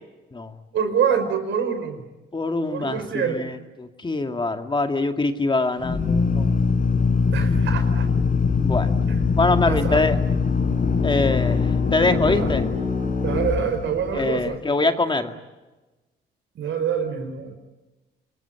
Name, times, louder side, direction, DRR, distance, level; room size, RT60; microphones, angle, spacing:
voice 1, 0.7-2.0 2.7-3.4 7.3-8.1 9.1-9.2 9.7-10.0 12.3-12.5 13.2-14.6 16.6-17.5, right 7 dB, 70° right, 7 dB, 5.3 m, -25 dB
voice 2, 2.3-3.5 3.8-6.6 8.6-8.9 9.4-10.2 11.0-12.7 14.2-15.4, left 3 dB, 25° left, 6 dB, 2.2 m, -23 dB
Drill, 5.8-14.4, left 5 dB, 45° left, 4.0 m, -22 dB
27.0 x 21.5 x 8.9 m, 1.1 s
cardioid pair, 90°, 20 cm